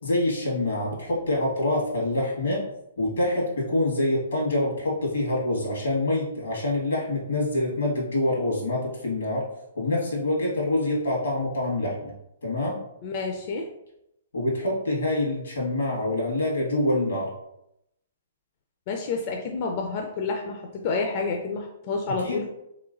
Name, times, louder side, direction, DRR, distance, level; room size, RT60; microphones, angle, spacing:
voice 1, 0.0-2.6 3.0-9.5 9.7-12.1 12.4-12.8 14.3-17.3 22.1-22.5, left 1 dB, 85° left, -3 dB, 1.4 m, -26 dB
voice 2, 13.0-13.7 18.9-22.5, left 4 dB, 40° left, 2 dB, 0.4 m, -29 dB
3.1 x 3.0 x 2.5 m, 0.82 s
hypercardioid pair, 145°, 0 cm